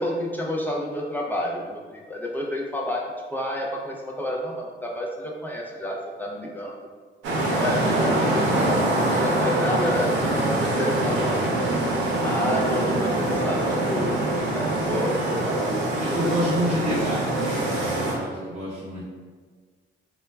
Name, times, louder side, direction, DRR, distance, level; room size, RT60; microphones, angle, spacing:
voice 1, 0.0-6.7 7.5-8.6 9.0-11.5 12.2-14.2 14.5-16.2 16.6-17.0, left 1 dB, 10° left, -3 dB, 0.3 m, -29 dB
sound 1, 7.2-18.1, right 1 dB, 75° right, 0.6 m, -24 dB
voice 2, 16.0-19.0, equal, 35° right, -10 dB, 0.7 m, -29 dB
2.2 x 2.2 x 3.2 m, 1.5 s
cardioid pair, 90°, 20 cm